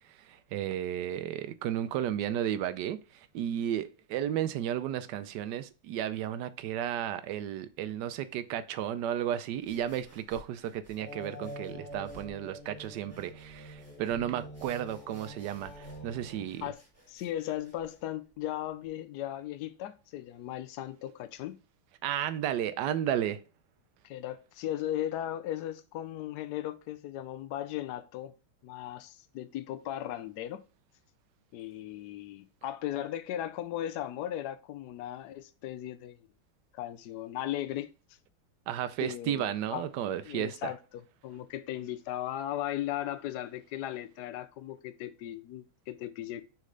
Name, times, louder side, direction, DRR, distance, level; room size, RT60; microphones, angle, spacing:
voice 1, 0.1-16.6 22.0-23.4 38.7-40.7, right 10 dB, 75° right, 1.0 m, -33 dB
sound 1, 9.6-18.9, right 1 dB, 10° right, 1.3 m, -59 dB
sound 2, 11.0-16.4, right 1 dB, 20° left, 3.0 m, -45 dB
voice 2, 17.1-21.6 24.0-28.3 28.6-30.6 31.5-36.2 36.7-37.9 39.0-39.8 40.2-46.4, left 12 dB, 85° left, 0.8 m, -37 dB
6.4 x 4.4 x 3.8 m
omnidirectional pair, 2.3 m